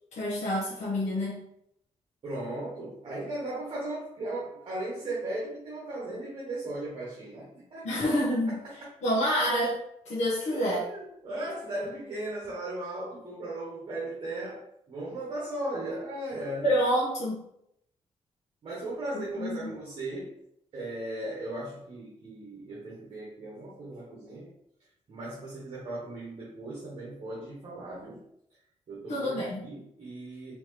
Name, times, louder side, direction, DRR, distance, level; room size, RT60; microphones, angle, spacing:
voice 1, 0.1-1.4 7.8-8.6 9.0-10.9 16.6-17.4 19.4-19.7 29.1-29.6, equal, 80° left, -6 dB, 1.2 m, -28 dB
voice 2, 2.2-8.0 8.5-8.7 10.5-16.7 18.6-20.3 20.7-24.5 25.1-28.2 28.9-30.6, right 1 dB, 45° right, -5 dB, 1.3 m, -37 dB
4.4 x 3.4 x 3.1 m, 0.75 s
wide cardioid pair, 160°, 12 cm